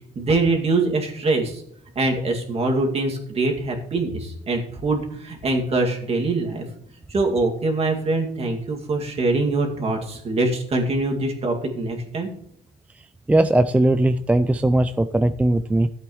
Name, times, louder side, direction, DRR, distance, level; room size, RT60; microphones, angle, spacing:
voice 1, 0.2-1.6 2.0-6.6 7.1-12.3, right 2 dB, 35° right, 2 dB, 2.1 m, -23 dB
voice 2, 13.3-15.9, right 1 dB, 10° right, 11 dB, 0.3 m, -19 dB
13.5 x 8.1 x 3.1 m, 0.73 s
cardioid pair, 110°, 17 cm